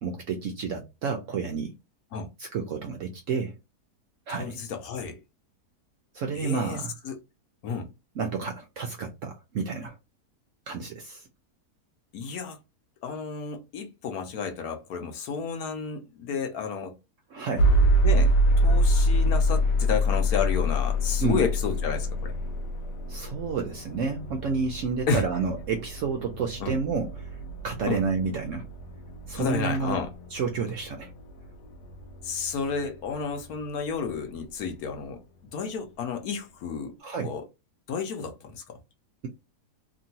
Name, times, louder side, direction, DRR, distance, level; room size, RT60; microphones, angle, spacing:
voice 1, 0.0-1.7 2.4-3.5 4.3-4.6 6.1-6.9 8.2-10.0 10.7-11.3 17.3-17.7 21.2-21.4 23.1-27.4 27.6-28.7 29.3-30.0 30.3-31.1 37.0-37.3, right 5 dB, 70° right, 0.7 m, -30 dB
voice 2, 4.3-5.2 6.3-6.8 7.0-7.2 7.6-7.9 12.1-12.6 13.0-16.9 18.0-22.3 25.1-25.2 26.6-26.7 27.9-28.0 29.3-30.1 32.2-35.2 35.5-36.9 37.2-37.4 37.9-38.8, left 5 dB, 70° left, 1.2 m, -31 dB
sound 1, 17.6-33.5, equal, 90° left, 1.2 m, -26 dB
3.0 x 2.6 x 2.7 m
omnidirectional pair, 1.7 m